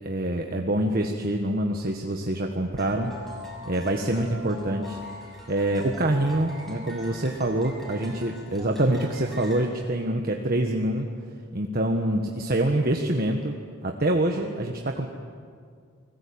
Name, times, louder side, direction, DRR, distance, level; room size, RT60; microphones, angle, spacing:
voice 1, 0.0-3.1 3.6-5.0 5.5-11.1 11.5-15.1, right 1 dB, 45° right, 3 dB, 1.5 m, -26 dB
sound 1, 2.8-9.7, equal, ahead, 6.6 m, -42 dB
29.5 x 20.5 x 8.8 m, 2.1 s
head